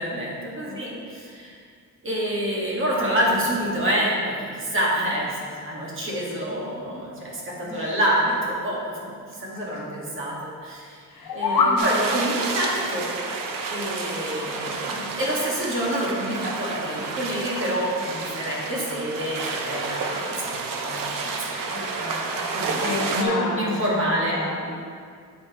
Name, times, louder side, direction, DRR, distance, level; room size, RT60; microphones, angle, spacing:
voice 1, 0.0-1.6 2.0-11.0 11.3-13.1 13.7-20.6 20.8-21.4 22.5-22.8 23.1-24.4, equal, 35° right, -5 dB, 1.7 m, -27 dB
voice 2, 0.7-1.1 7.6-8.0 9.6-9.8 11.1-11.9 21.7-22.3 22.7-24.8, left 2 dB, 60° left, -4 dB, 2.2 m, -33 dB
sound 1, 11.1-11.8, left 4 dB, 80° left, 0.9 m, -22 dB
sound 2, 11.8-23.2, right 4 dB, 70° right, 0.9 m, -30 dB
8.6 x 8.4 x 3.0 m, 2.1 s
wide cardioid pair, 175°, 34 cm